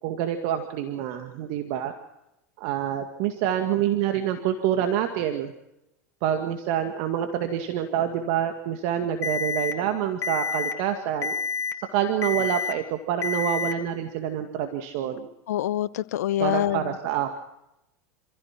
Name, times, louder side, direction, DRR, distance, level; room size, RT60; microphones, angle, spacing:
voice 1, 0.0-1.9 2.6-5.5 6.2-11.4 11.9-15.3 16.4-17.4, right 10 dB, 60° right, 6 dB, 2.1 m, -27 dB
Alarm, 9.2-9.7 10.2-10.7 11.2-11.7 12.2-12.7 13.2-13.7, left 5 dB, 35° left, 2.2 m, -28 dB
voice 2, 15.5-16.9, left 12 dB, 75° left, 17 dB, 0.9 m, -25 dB
27.0 x 15.5 x 6.1 m, 0.89 s
hypercardioid pair, 100°, 9 cm